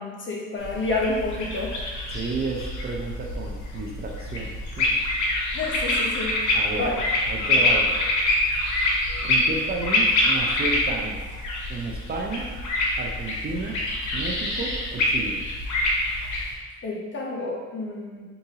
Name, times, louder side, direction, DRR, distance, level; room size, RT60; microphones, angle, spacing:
voice 1, 0.0-1.7 5.5-6.4 6.7-7.0 7.4-7.5 16.8-18.2, left 2 dB, 40° left, -2 dB, 0.9 m, -29 dB
sound 1, 0.6-16.5, left 2 dB, 75° left, 0.9 m, -25 dB
voice 2, 2.1-4.9 6.5-6.9 7.3-8.1 9.2-11.2 11.7-12.5 13.0-13.8 14.1-15.4, right 3 dB, 35° right, -1 dB, 0.5 m, -32 dB
4.7 x 2.6 x 2.8 m, 1.3 s
cardioid pair, 90°, 30 cm